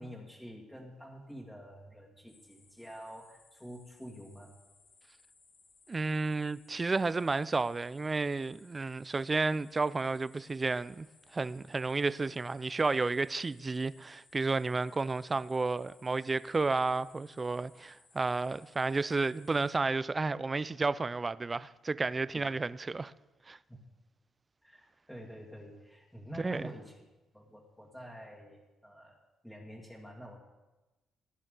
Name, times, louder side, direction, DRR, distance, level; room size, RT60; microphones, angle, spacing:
voice 1, 0.0-4.5 22.3-22.5 23.7-23.8 24.6-27.0 27.3-29.2 29.4-30.4, equal, 5° left, 2.0 m, -48 dB
sound 1, 2.3-19.7, left 4 dB, 65° left, 3.8 m, -64 dB
voice 2, 5.9-11.1 11.3-23.1 23.5-23.6 26.4-26.6, right 3 dB, 25° right, 0.4 m, -32 dB
16.5 x 9.6 x 3.8 m
cardioid pair, 90°, 0 cm